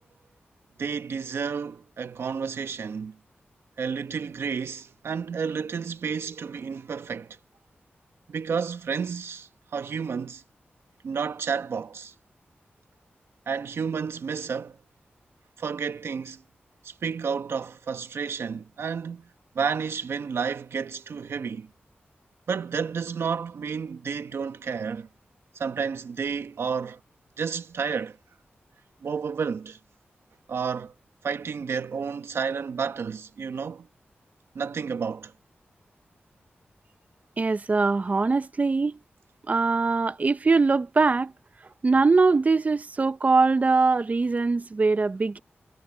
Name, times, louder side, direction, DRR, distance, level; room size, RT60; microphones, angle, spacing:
voice 1, 0.8-3.2 3.8-7.4 8.3-10.4 11.0-12.1 13.5-14.8 15.6-16.4 16.8-19.3 19.5-21.7 22.5-25.1 25.5-27.0 27.4-28.2 29.0-29.8 30.5-30.9 31.2-33.9 34.5-35.3, right 6 dB, 80° right, 1.3 m, -31 dB
voice 2, 37.4-39.0 39.5-41.3 41.8-45.4, right 4 dB, 40° right, 0.6 m, -22 dB
wide cardioid pair, 100°, 4 cm